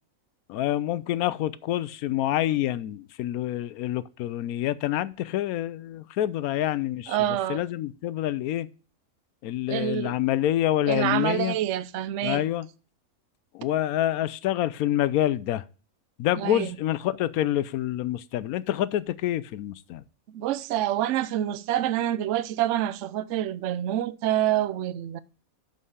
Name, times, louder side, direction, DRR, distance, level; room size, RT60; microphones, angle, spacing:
voice 1, 0.5-8.7 9.4-11.6 12.2-12.7 13.5-15.6 16.2-20.0, left 13 dB, 85° left, 1.1 m, -27 dB
voice 2, 7.1-7.6 9.7-10.2 10.9-12.4 16.4-16.8 20.3-25.2, right 12 dB, 65° right, 0.8 m, -27 dB
6.6 x 5.5 x 6.4 m
omnidirectional pair, 1.5 m